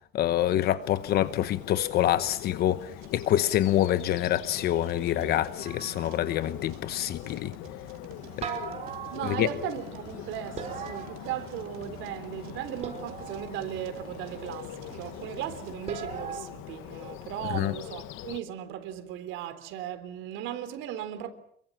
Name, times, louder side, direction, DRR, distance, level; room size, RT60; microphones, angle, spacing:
voice 1, 0.1-7.5 9.2-9.5 17.5-17.8, left 12 dB, 50° left, 1.1 m, -26 dB
Bird, 0.8-18.4, left 15 dB, 75° left, 1.1 m, -42 dB
sound 1, 2.8-15.8, right 10 dB, 90° right, 2.8 m, -51 dB
sound 2, 5.6-6.5 8.4-9.8 10.6-11.8 12.8-13.7 15.9-16.5, right 6 dB, 30° right, 4.8 m, -39 dB
voice 2, 9.1-21.3, right 11 dB, 70° right, 3.6 m, -37 dB
28.0 x 23.0 x 7.4 m
cardioid pair, 175°, 21 cm